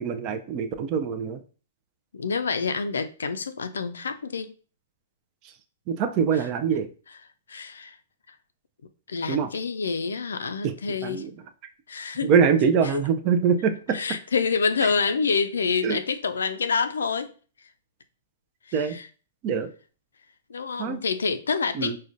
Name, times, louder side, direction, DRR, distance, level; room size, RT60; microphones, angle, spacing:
voice 1, 0.0-1.4 5.9-6.9 9.3-9.5 10.6-10.8 11.0-11.3 12.2-14.2 15.8-16.0 18.7-19.0 19.4-19.7 20.8-21.0 21.7-22.0, right 6 dB, 40° right, 0.4 m, -24 dB
voice 2, 2.1-4.5 7.5-8.0 9.1-11.3 11.9-12.3 12.8-13.0 13.9-17.3 18.7-19.1 20.5-22.0, left 5 dB, 75° left, 0.3 m, -27 dB
4.8 x 2.2 x 2.5 m
hypercardioid pair, 110°, 0 cm